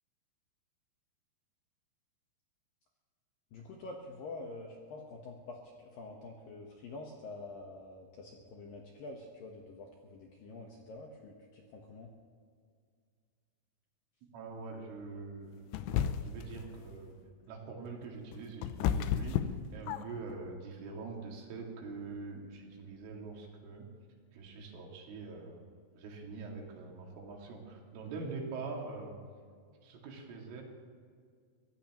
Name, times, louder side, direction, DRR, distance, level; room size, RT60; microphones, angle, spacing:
voice 1, 3.5-12.1, left 2 dB, 70° left, 0 dB, 2.2 m, -47 dB
voice 2, 14.2-17.2 17.5-23.9 24.3-29.2 29.8-30.6, right 4 dB, 80° right, -1 dB, 4.9 m, -44 dB
sound 1, 15.7-16.5 18.0-20.3, left 9 dB, 90° left, 2.5 m, -32 dB
23.5 x 16.0 x 3.1 m, 2.1 s
omnidirectional pair, 5.8 m